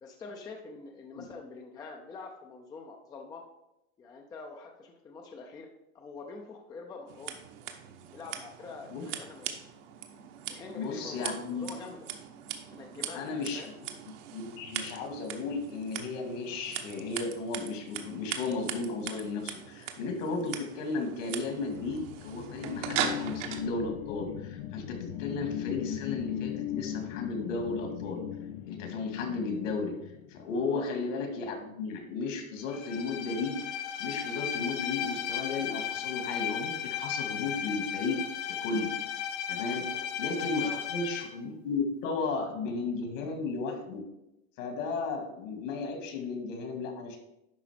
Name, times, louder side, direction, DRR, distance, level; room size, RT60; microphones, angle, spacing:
voice 1, 0.0-3.4 4.0-5.7 5.9-7.4 8.1-9.6 10.5-12.1 12.7-13.7 30.7-30.9 39.9-40.1 40.6-40.8, left 4 dB, 10° left, 2 dB, 0.4 m, -45 dB
Scissors, 7.1-23.6, right 9 dB, 60° right, 1.1 m, -40 dB
voice 2, 10.7-11.7 13.1-13.6 14.3-28.2 28.6-30.0 30.3-33.6 34.0-38.2 38.5-38.9 39.5-39.9 40.2-44.0 44.6-47.2, left 4 dB, 65° left, 4 dB, 2.1 m, -34 dB
sound 1, 21.6-30.7, left 11 dB, 90° left, 0.7 m, -38 dB
Bowed string instrument, 32.7-41.3, left 9 dB, 45° left, 0.8 m, -35 dB
11.0 x 3.9 x 5.1 m, 0.87 s
supercardioid pair, 150°, 41 cm